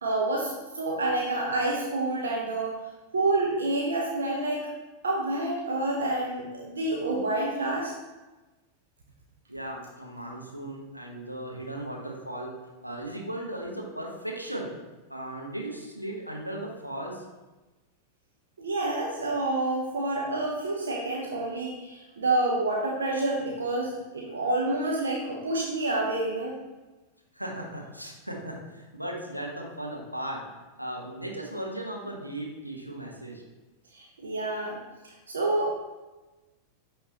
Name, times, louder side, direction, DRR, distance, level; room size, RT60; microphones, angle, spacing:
voice 1, 0.0-2.8 3.1-4.7 5.0-7.9 18.6-26.5 33.9-34.8 35.0-35.8, right 2 dB, 70° right, -2 dB, 0.9 m, -28 dB
voice 2, 9.5-12.5 12.8-14.7 15.1-17.2 27.3-30.4 30.8-33.4, right 1 dB, 90° right, -1 dB, 1.1 m, -37 dB
9.0 x 3.7 x 3.0 m, 1.1 s
figure-of-eight pair, 90°, 0 cm